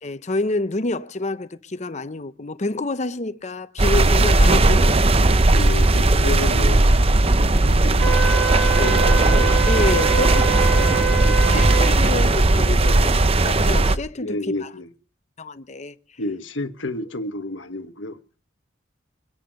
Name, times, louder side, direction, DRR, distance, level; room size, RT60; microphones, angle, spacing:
voice 1, 0.0-5.4 9.7-11.2 11.5-14.7 15.4-15.9, left 2 dB, 40° left, 0.8 m, -28 dB
sound 1, 3.8-14.0, right 2 dB, 30° right, 0.7 m, -17 dB
voice 2, 5.5-6.9 7.6-9.9 10.6-12.0 14.2-14.9 16.2-18.2, left 2 dB, 90° left, 1.4 m, -31 dB
sound 2, 5.9-6.3 6.7-8.3 8.6-9.2 9.4-9.7 9.9-12.3 12.6-13.1 13.4-13.6 13.9-14.1, equal, 15° left, 2.6 m, -39 dB
Wind instrument woodwind instrument, 8.0-11.9, right 6 dB, 75° right, 2.2 m, -25 dB
24.0 x 10.5 x 5.3 m
head